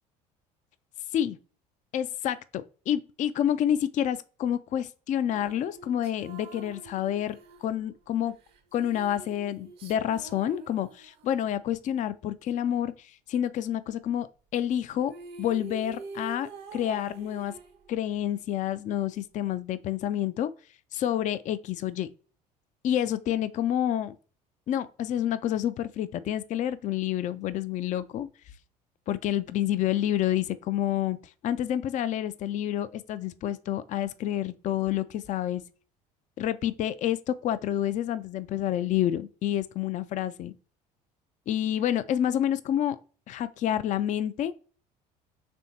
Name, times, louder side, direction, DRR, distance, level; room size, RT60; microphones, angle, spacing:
voice 1, 1.9-8.3 8.7-14.3 14.5-15.1 15.4-17.5 17.9-20.5 20.9-22.1 22.8-24.1 24.7-28.3 29.1-35.6 36.4-40.5 41.5-43.0 43.3-44.6, left 11 dB, 35° left, 0.4 m, -28 dB
sound 1, 5.3-11.5 14.7-14.8 15.0-18.2, right 4 dB, 50° right, 0.7 m, -46 dB
4.3 x 3.4 x 2.7 m
hypercardioid pair, 60°, 21 cm